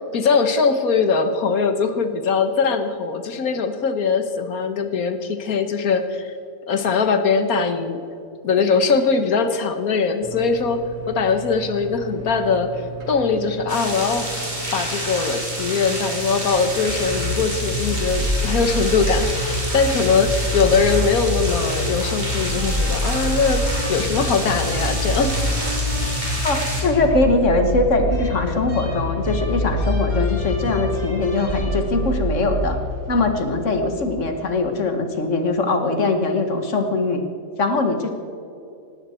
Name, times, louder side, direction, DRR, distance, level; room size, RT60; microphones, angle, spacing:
voice 1, 0.1-6.3 6.7-8.0 8.4-12.7 13.1-14.3 14.7-25.4, left 5 dB, 85° left, 8 dB, 1.7 m, -21 dB
sound 1, 10.2-27.0, right 5 dB, 50° right, 2.8 m, -36 dB
sound 2, 13.7-26.8, right 1 dB, 30° right, 3.6 m, -29 dB
sound 3, 16.9-34.2, left 1 dB, 30° left, 3.1 m, -26 dB
voice 2, 26.4-32.8 33.1-37.2 37.6-38.1, left 3 dB, 60° left, 6 dB, 1.8 m, -21 dB
18.5 x 17.5 x 4.4 m, 2.7 s
omnidirectional pair, 1.5 m